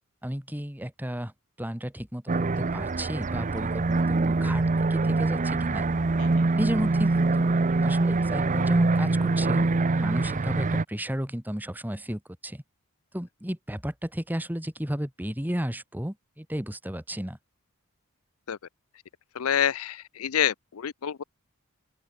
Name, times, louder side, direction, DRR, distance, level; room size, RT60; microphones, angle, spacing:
voice 1, 0.2-1.3 1.6-4.6 4.9-5.9 6.5-12.6 13.1-17.4, equal, 10° right, 2.1 m, -33 dB
sound 1, 2.3-10.8, right 3 dB, 35° right, 0.6 m, -24 dB
voice 2, 19.4-21.2, left 9 dB, 70° left, 0.5 m, -27 dB
open air
head